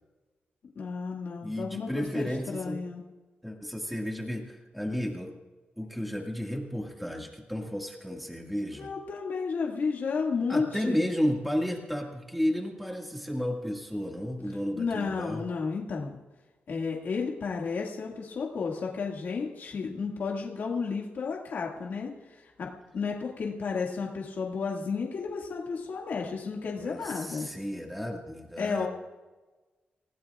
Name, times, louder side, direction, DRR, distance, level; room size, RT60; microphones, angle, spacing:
voice 1, 0.8-3.0 8.7-11.0 14.8-16.2 16.7-27.5 28.6-28.9, left 5 dB, 65° left, -2 dB, 2.1 m, -32 dB
voice 2, 1.4-2.8 3.4-5.3 5.8-8.9 10.5-15.4 26.8-28.9, equal, ahead, 0 dB, 2.0 m, -32 dB
30.0 x 17.0 x 2.5 m, 1.2 s
wide cardioid pair, 125°, 4 cm